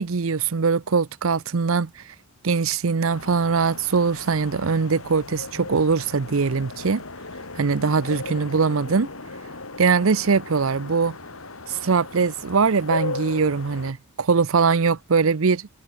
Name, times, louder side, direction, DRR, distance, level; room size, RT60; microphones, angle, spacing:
voice 1, 0.0-1.9 2.4-7.0 7.6-9.1 9.8-11.2 11.7-15.7, right 5 dB, 70° right, 0.6 m, -22 dB
sound 1, 3.1-13.9, left 3 dB, 70° left, 3.3 m, -36 dB
head